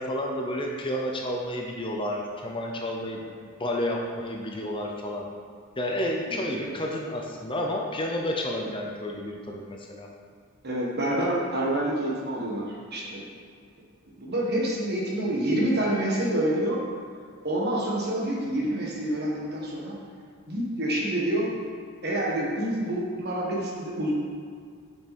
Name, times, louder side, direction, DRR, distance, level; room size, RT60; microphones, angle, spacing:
voice 1, 0.0-5.3 5.8-10.1, left 1 dB, 25° left, 0 dB, 0.6 m, -31 dB
voice 2, 10.6-13.2 14.2-16.8 17.4-19.9 20.5-21.5 22.0-24.1, right 1 dB, 50° right, -4 dB, 1.6 m, -27 dB
6.5 x 6.0 x 4.3 m, 2.1 s
head